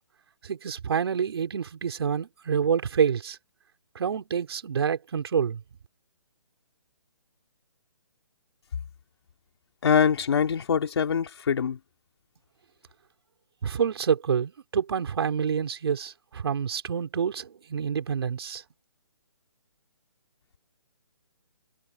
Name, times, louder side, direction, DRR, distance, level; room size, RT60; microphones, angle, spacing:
voice 1, 0.4-3.4 3.9-5.6 13.6-18.6, right 7 dB, 55° right, 5.0 m, -27 dB
voice 2, 9.8-11.8, left 7 dB, 55° left, 3.1 m, -23 dB
hypercardioid pair, 165°, 16 cm